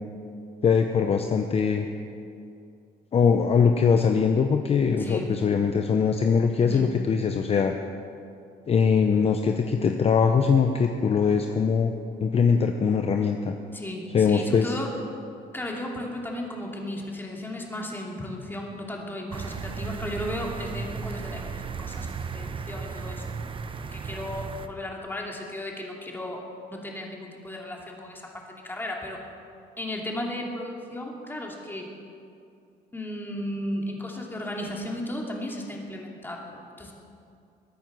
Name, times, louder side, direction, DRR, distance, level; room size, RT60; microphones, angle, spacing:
voice 1, 0.6-1.9 3.1-7.7 8.7-11.9 12.2-13.5 14.1-14.7, left 6 dB, 35° left, 5 dB, 0.8 m, -22 dB
voice 2, 5.0-5.4 6.6-6.9 13.7-14.9 15.5-23.2 23.9-29.2 29.8-31.9 32.9-36.9, left 1 dB, 10° left, -1 dB, 2.7 m, -35 dB
sound 1, 19.3-24.7, right 5 dB, 30° right, 0.9 m, -35 dB
21.5 x 9.0 x 6.2 m, 2.5 s
cardioid pair, 110°, 17 cm